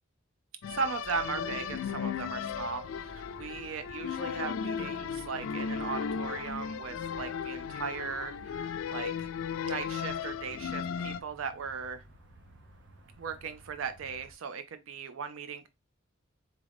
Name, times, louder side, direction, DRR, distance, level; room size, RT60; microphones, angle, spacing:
sound 1, 0.6-11.2, left 7 dB, 75° left, 0.4 m, -36 dB
voice 1, 0.7-9.3 9.6-12.0 13.2-15.7, right 5 dB, 80° right, 0.4 m, -38 dB
sound 2, 1.1-14.3, right 1 dB, 60° right, 0.9 m, -55 dB
4.0 x 3.7 x 3.3 m
head